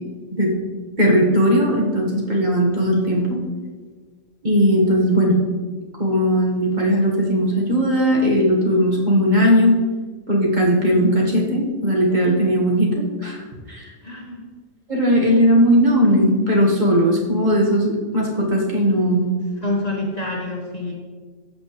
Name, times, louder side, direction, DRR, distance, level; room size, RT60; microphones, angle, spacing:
voice 1, 1.0-3.4 4.4-5.3 6.0-9.7 10.3-12.9 13.2-13.9 14.9-19.2, equal, 35° right, -3 dB, 1.6 m, -18 dB
voice 2, 14.0-14.4 19.6-20.9, left 2 dB, 30° left, -2 dB, 1.1 m, -27 dB
14.5 x 5.8 x 3.1 m, 1.5 s
omnidirectional pair, 1.4 m